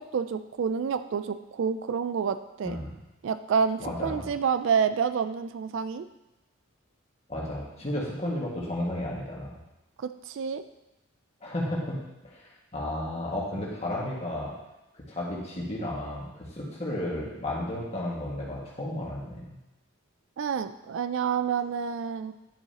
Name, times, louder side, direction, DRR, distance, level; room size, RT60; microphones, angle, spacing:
voice 1, 0.0-2.8 3.2-6.1 10.0-10.6 20.4-22.3, right 6 dB, 60° right, 11 dB, 0.3 m, -28 dB
voice 2, 3.8-4.2 7.3-9.5 11.4-12.0 12.2-14.5 15.1-19.4, left 1 dB, 30° left, -5 dB, 1.8 m, -33 dB
10.5 x 6.9 x 2.9 m, 0.97 s
head